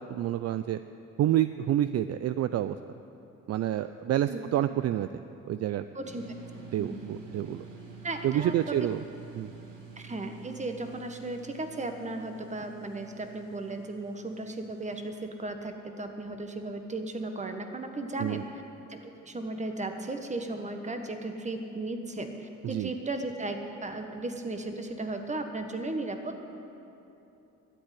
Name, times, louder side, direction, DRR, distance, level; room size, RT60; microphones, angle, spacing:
voice 1, 0.1-0.8 1.2-2.8 3.5-5.1 5.5-5.8 6.7-7.6 8.2-9.0 9.4-9.5 18.2-18.4 22.6-22.9, right 12 dB, 55° right, 12 dB, 0.4 m, -28 dB
voice 2, 5.9-6.4 6.8-7.1 8.0-8.8 10.0-18.6 18.9-26.4, right 2 dB, 25° right, 6 dB, 1.4 m, -36 dB
sound 1, 6.0-15.1, right 5 dB, 80° right, 2.1 m, -49 dB
12.0 x 8.2 x 10.0 m, 2.9 s
cardioid pair, 90°, 30 cm